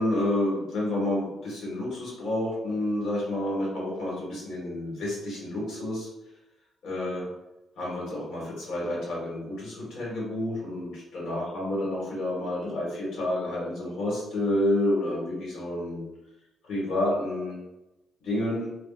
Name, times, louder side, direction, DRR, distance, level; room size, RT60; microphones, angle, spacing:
voice 1, 0.0-6.1 6.8-7.3 7.8-16.0 16.7-17.6 18.2-18.7, left 1 dB, 70° left, -5 dB, 1.4 m, -29 dB
3.5 x 2.3 x 2.4 m, 0.94 s
cardioid pair, 90°, 0 cm